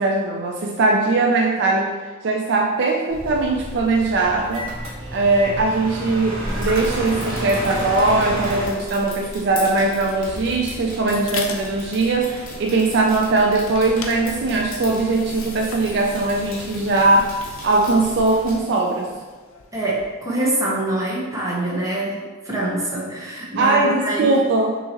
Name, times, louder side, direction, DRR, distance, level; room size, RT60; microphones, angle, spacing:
voice 1, 0.0-1.9 2.2-4.7 5.1-17.3 17.6-19.1 23.6-24.7, right 3 dB, 55° right, 1 dB, 0.3 m, -20 dB
sound 1, 3.1-8.7, equal, 85° right, 1.1 m, -30 dB
sound 2, 6.5-18.6, left 1 dB, 40° left, 1.0 m, -37 dB
sound 3, 10.5-20.3, left 5 dB, 65° left, 0.5 m, -39 dB
voice 2, 19.7-24.3, right 2 dB, 15° right, -4 dB, 0.9 m, -25 dB
6.1 x 2.8 x 2.9 m, 1.4 s
head